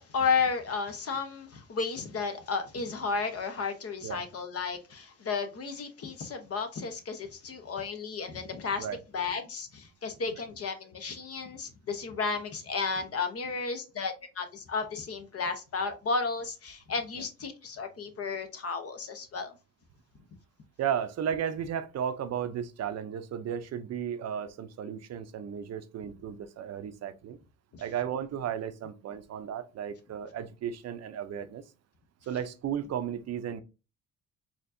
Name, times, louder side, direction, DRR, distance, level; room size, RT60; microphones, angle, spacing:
voice 1, 0.0-8.9 9.1-19.5 27.7-27.8, left 5 dB, 50° left, 0.9 m, -33 dB
voice 2, 20.8-27.4 27.8-31.6 32.3-33.6, right 8 dB, 60° right, 0.6 m, -34 dB
4.3 x 2.8 x 2.6 m
cardioid pair, 90°, 30 cm